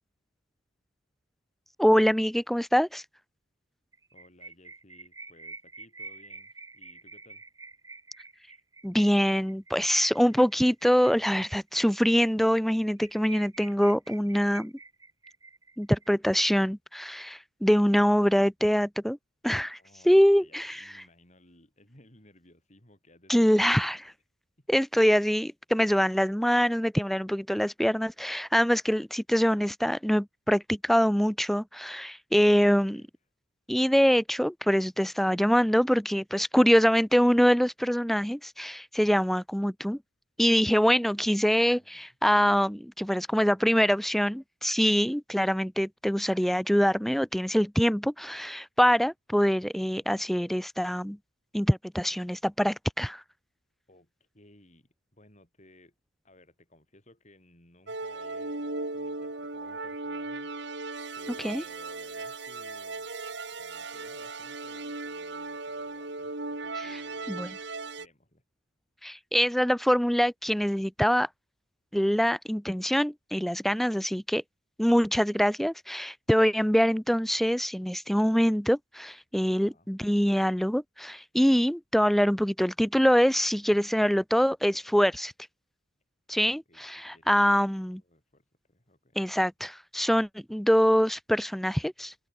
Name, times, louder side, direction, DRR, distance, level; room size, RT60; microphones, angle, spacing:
voice 1, 1.8-3.0 8.8-14.7 15.8-19.2 19.4-19.8 20.1-20.8 23.3-24.1 24.7-33.0 33.7-40.0 40.4-51.2 51.5-53.2 61.4-61.6 66.8-66.9 67.3-67.6 69.0-71.3 71.9-74.4 74.8-85.3 86.3-88.0 89.2-92.1, equal, ahead, 0.4 m, -24 dB
sound 1, 3.9-11.9 12.2-12.3 12.6-12.7 13.0-16.1, right 3 dB, 15° right, 4.5 m, -48 dB
voice 2, 4.1-7.4 17.9-18.1 19.7-23.8 24.6-24.7 32.7-33.1 41.2-41.4 41.8-42.1 50.0-50.1 53.9-55.9 56.2-60.8 61.1-63.1 63.5-67.4 68.0-68.4 79.5-79.9 86.7-86.8 87.1-89.2, left 1 dB, 35° left, 5.2 m, -59 dB
sound 2, 57.9-68.1, right 3 dB, 60° right, 2.8 m, -37 dB
open air
head